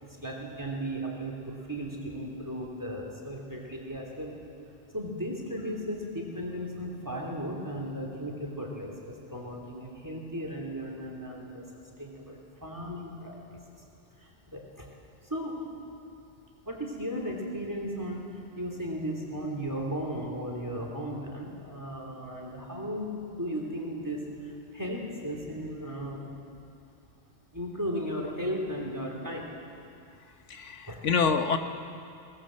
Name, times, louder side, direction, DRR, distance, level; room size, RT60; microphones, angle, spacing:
voice 1, 0.0-4.3 4.9-11.6 12.0-13.6 14.2-14.9 15.2-15.7 16.6-26.2 27.5-29.5 30.9-31.0, equal, 15° right, 0 dB, 3.3 m, -36 dB
voice 2, 30.5-31.6, left 5 dB, 85° left, 6 dB, 1.5 m, -26 dB
21.5 x 19.0 x 7.7 m, 2.6 s
omnidirectional pair, 1.2 m